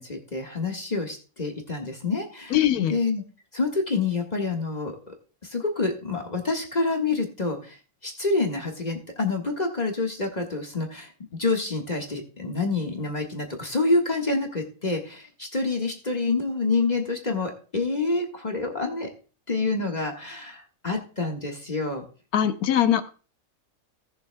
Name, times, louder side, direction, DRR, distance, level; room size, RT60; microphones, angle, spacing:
voice 1, 0.0-2.6 2.9-3.2 3.5-4.9 5.5-7.7 8.0-11.1 11.4-19.1 19.5-22.0, left 3 dB, 30° left, 1 dB, 1.6 m, -27 dB
voice 2, 2.5-2.9 22.3-23.2, left 10 dB, 90° left, 10 dB, 1.3 m, -22 dB
17.5 x 7.2 x 2.2 m, 0.36 s
omnidirectional pair, 1.5 m